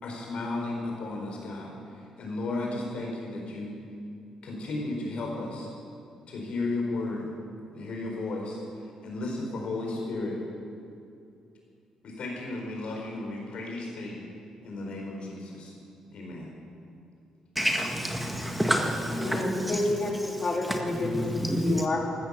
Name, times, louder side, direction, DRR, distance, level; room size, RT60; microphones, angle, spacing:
voice 1, 0.0-1.7 2.2-3.8 4.4-5.7 6.3-7.3 7.7-8.6 9.0-10.4 12.0-14.3 14.6-15.7 16.1-16.5, left 2 dB, 60° left, 0 dB, 4.6 m, -34 dB
voice 2, 17.5-19.8 20.6-21.8, equal, 5° right, 2 dB, 1.8 m, -28 dB
voice 3, 19.2-21.3 21.5-22.0, left 2 dB, 40° left, 0 dB, 3.4 m, -29 dB
14.5 x 13.0 x 7.0 m, 2.5 s
hypercardioid pair, 50°, 2 cm